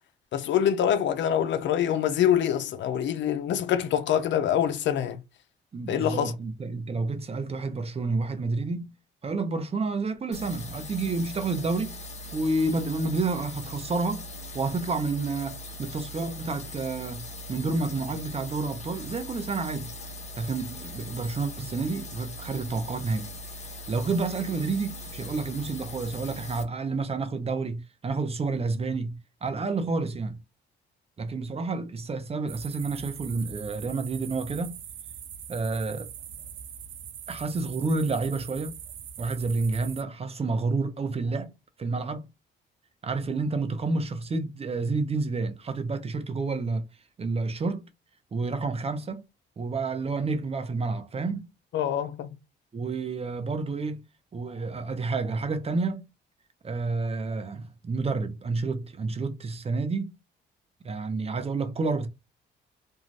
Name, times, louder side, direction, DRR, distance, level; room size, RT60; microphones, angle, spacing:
voice 1, 0.3-5.2 5.9-6.3 51.7-52.3, left 9 dB, 65° left, 0.5 m, -25 dB
voice 2, 5.7-8.9 9.2-12.0 12.3-14.3 14.5-17.2 17.5-19.9 20.4-23.3 23.9-30.4 31.2-34.8 35.5-36.1 37.3-38.7 39.2-41.5 41.8-42.3 43.0-46.9 47.2-47.9 48.3-49.2 49.6-51.5 52.7-54.0 54.3-56.0 56.6-60.1 60.8-62.1, right 3 dB, 30° right, 0.6 m, -29 dB
sound 1, 10.3-26.6, left 1 dB, 35° left, 0.7 m, -40 dB
sound 2, 32.5-40.0, right 8 dB, 75° right, 0.5 m, -42 dB
2.6 x 2.3 x 3.2 m
cardioid pair, 90°, 20 cm